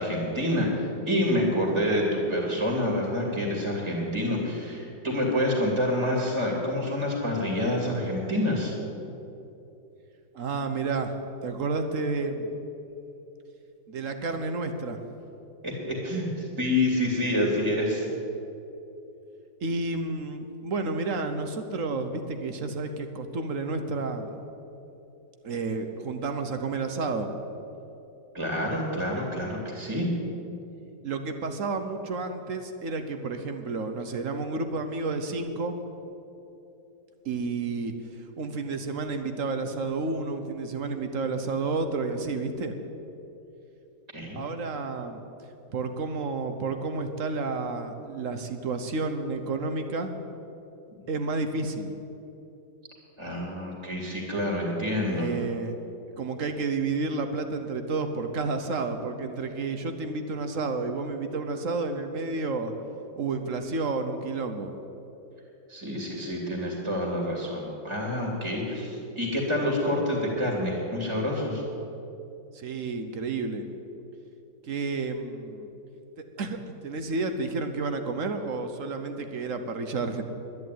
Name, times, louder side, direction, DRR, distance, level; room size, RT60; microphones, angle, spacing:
voice 1, 0.0-8.7 15.6-18.1 28.3-30.1 44.1-44.4 53.2-55.3 65.7-71.6, left 1 dB, 15° right, -1 dB, 2.4 m, -27 dB
voice 2, 10.3-11.1 11.4-12.5 13.9-15.0 19.6-24.3 25.4-27.3 31.0-35.8 37.2-42.8 44.3-45.2 45.7-50.1 51.1-51.9 55.1-55.7 56.2-62.7 63.2-64.7 72.5-73.7 74.6-75.7 76.4-80.2, right 3 dB, 50° right, 7 dB, 1.1 m, -31 dB
11.0 x 11.0 x 9.3 m, 2.9 s
omnidirectional pair, 2.0 m